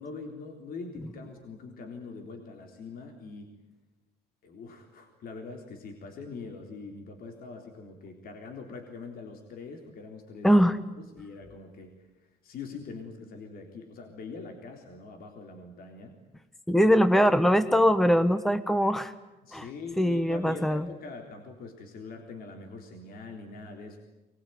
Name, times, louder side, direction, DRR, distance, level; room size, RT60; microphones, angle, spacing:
voice 1, 0.0-3.6 4.4-10.5 11.1-16.2 19.4-24.0, left 4 dB, 60° left, 3 dB, 3.8 m, -43 dB
voice 2, 10.4-10.8 16.7-19.1 19.5-19.6 20.0-20.9, equal, ahead, 11 dB, 1.2 m, -22 dB
24.5 x 21.5 x 9.4 m, 1.0 s
cardioid pair, 110°, 17 cm